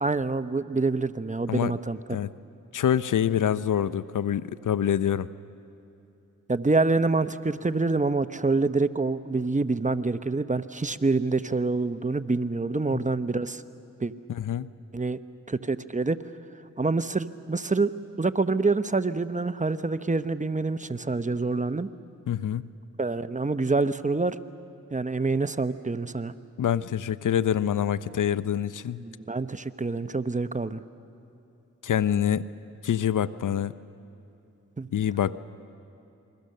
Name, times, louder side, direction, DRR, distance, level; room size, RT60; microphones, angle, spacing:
voice 1, 0.0-2.0 6.5-13.6 14.0-14.1 14.9-15.2 15.5-16.2 16.8-17.9 18.2-21.9 23.0-24.4 24.9-26.3 29.0-30.8 34.8-34.9, right 3 dB, 25° right, 12 dB, 0.9 m, -26 dB
voice 2, 2.7-5.3 14.3-14.7 22.3-22.6 26.6-29.0 31.8-32.4 32.8-33.7 34.9-35.4, left 9 dB, 75° left, 16 dB, 0.6 m, -26 dB
28.0 x 22.0 x 6.7 m, 2.9 s
cardioid pair, 45°, 32 cm